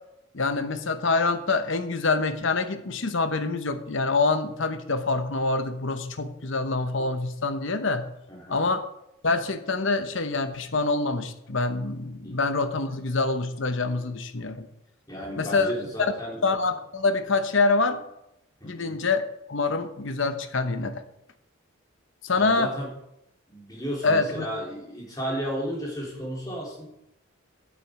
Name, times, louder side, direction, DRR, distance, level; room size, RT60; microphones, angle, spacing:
voice 1, 0.3-8.1 8.5-8.8 9.2-14.7 15.4-15.7 16.4-18.0 18.6-19.2 19.5-21.0 22.2-22.7 24.0-24.5, left 3 dB, 55° left, 10 dB, 0.9 m, -25 dB
voice 2, 8.3-8.7 12.2-12.4 15.1-16.5 18.6-19.0 22.3-22.9 23.5-26.9, equal, 15° left, -3 dB, 3.0 m, -33 dB
12.5 x 7.4 x 4.8 m, 0.84 s
head